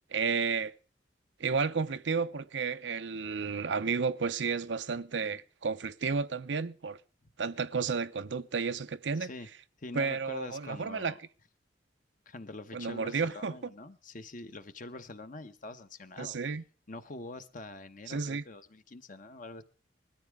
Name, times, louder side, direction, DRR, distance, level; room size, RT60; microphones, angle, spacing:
voice 1, 0.1-0.7 1.4-7.0 7.4-9.3 9.9-11.1 12.7-13.5 16.2-16.6 18.1-18.4, right 5 dB, 80° right, 0.7 m, -32 dB
voice 2, 9.2-9.5 9.8-11.2 12.3-16.4 16.9-19.6, left 2 dB, 45° left, 1.0 m, -45 dB
20.5 x 13.0 x 3.5 m
head